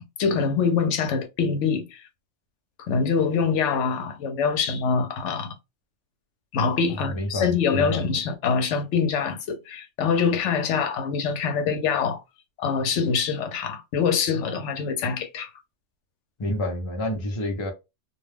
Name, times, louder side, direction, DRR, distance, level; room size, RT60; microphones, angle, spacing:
voice 1, 0.0-2.0 2.8-5.5 6.5-12.2 12.6-15.5, left 5 dB, 80° left, 0.9 m, -24 dB
voice 2, 6.9-8.0 16.4-17.7, left 1 dB, 35° left, 0.5 m, -29 dB
2.3 x 2.2 x 3.2 m
omnidirectional pair, 1.2 m